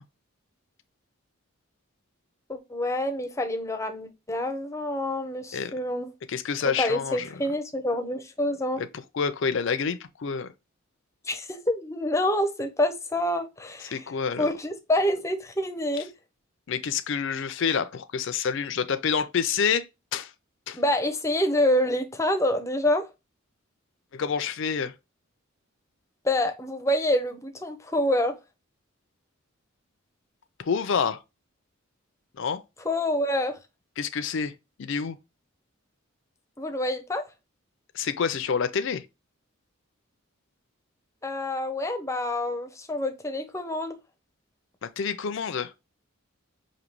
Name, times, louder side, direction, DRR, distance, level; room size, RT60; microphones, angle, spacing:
voice 1, 2.5-6.1 6.8-8.8 11.3-14.0 14.4-16.1 20.7-23.1 26.2-28.4 32.8-33.6 36.6-37.2 41.2-44.0, left 1 dB, 15° left, 0.6 m, -27 dB
voice 2, 6.3-7.3 8.8-10.5 13.9-14.5 16.7-19.9 20.1-20.3 20.7-20.8 24.1-24.9 30.6-31.2 32.4-32.6 34.0-34.5 34.8-35.2 37.9-39.0 44.8-45.7, left 6 dB, 60° left, 0.5 m, -28 dB
5.1 x 2.7 x 3.0 m
head